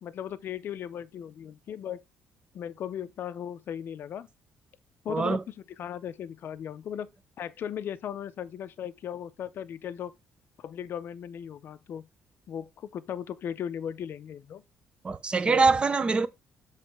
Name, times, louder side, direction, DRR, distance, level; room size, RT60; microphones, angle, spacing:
voice 1, 0.0-2.0 2.5-4.3 5.0-7.1 7.4-10.1 10.6-12.1 12.5-14.6 15.5-15.7, left 9 dB, 50° left, 0.5 m, -37 dB
voice 2, 5.1-5.4 15.0-16.3, right 4 dB, 20° right, 0.5 m, -23 dB
7.4 x 3.2 x 4.3 m
cardioid pair, 165°, 5 cm